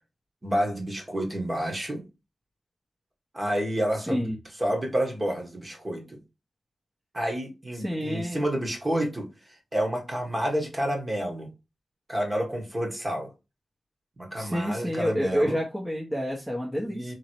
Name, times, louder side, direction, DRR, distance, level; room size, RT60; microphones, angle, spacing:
voice 1, 0.4-2.0 3.3-4.3 4.6-6.2 7.1-11.5 12.1-13.3 14.2-15.6 16.9-17.1, equal, 30° right, 1.6 m, -29 dB
voice 2, 4.1-4.4 7.7-8.4 14.4-17.1, equal, 10° right, 1.1 m, -28 dB
3.7 x 3.2 x 4.5 m
cardioid pair, 70°, 0 cm